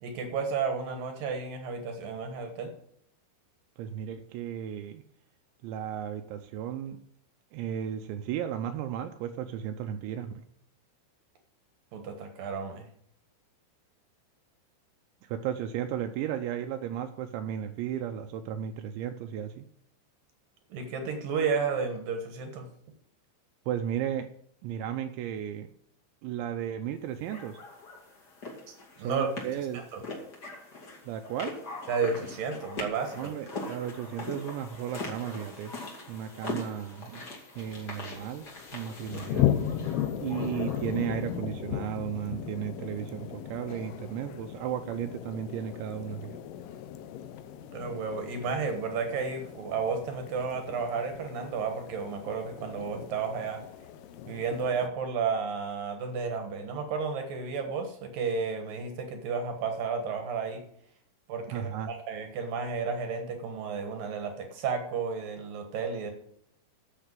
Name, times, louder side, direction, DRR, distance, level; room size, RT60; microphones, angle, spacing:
voice 1, 0.0-2.7 11.9-12.9 20.7-22.7 28.7-29.3 29.9-30.0 31.9-33.3 47.7-53.6 54.3-60.6 61.3-66.1, right 5 dB, 65° right, 5 dB, 2.5 m, -32 dB
voice 2, 3.8-5.0 5.6-7.0 7.5-10.4 15.2-19.6 23.7-24.3 24.6-25.7 26.2-27.6 29.0-29.9 31.0-31.6 33.2-35.7 36.1-39.5 40.2-46.4 61.5-61.9, right 10 dB, 80° right, 6 dB, 2.8 m, -34 dB
sound 1, 27.3-41.4, left 2 dB, 35° left, 1.8 m, -42 dB
sound 2, 37.5-54.9, left 11 dB, 80° left, 2.3 m, -36 dB
10.0 x 7.4 x 7.5 m, 0.68 s
omnidirectional pair, 5.5 m